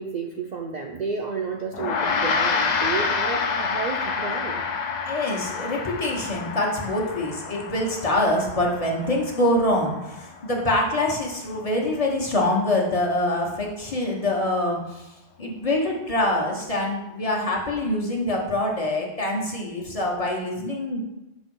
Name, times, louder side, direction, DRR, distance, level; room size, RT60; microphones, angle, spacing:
voice 1, 0.0-4.7, right 4 dB, 55° right, 1 dB, 0.5 m, -31 dB
Gong, 1.7-11.3, left 5 dB, 55° left, 0.5 m, -28 dB
voice 2, 5.0-15.1 15.4-21.0, left 1 dB, 35° left, -2 dB, 1.0 m, -25 dB
6.1 x 3.1 x 5.3 m, 0.99 s
omnidirectional pair, 1.1 m